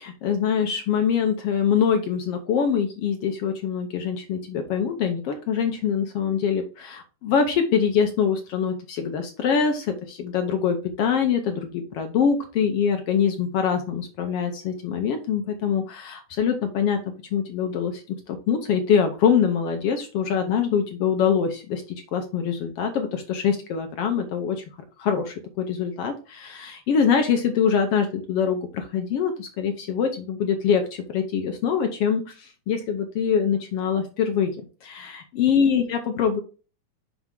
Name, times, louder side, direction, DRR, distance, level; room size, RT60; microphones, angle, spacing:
voice 1, 0.0-17.0 17.3-21.8 22.1-24.6 25.0-34.5 34.8-36.4, left 7 dB, 75° left, 5 dB, 1.4 m, -24 dB
6.0 x 5.5 x 3.6 m, 0.35 s
omnidirectional pair, 3.6 m